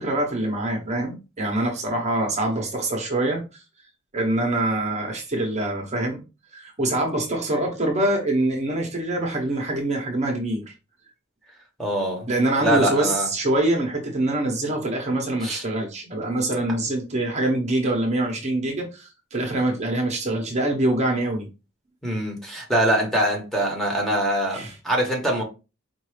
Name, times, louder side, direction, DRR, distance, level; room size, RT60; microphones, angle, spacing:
voice 1, 0.0-3.6 4.1-6.2 6.5-10.7 12.3-21.5 24.5-24.7, right 1 dB, 35° right, 0.9 m, -24 dB
voice 2, 11.8-12.3 12.6-13.3 15.4-15.6 22.0-25.4, right 1 dB, ahead, 1.1 m, -23 dB
4.7 x 2.6 x 3.2 m
head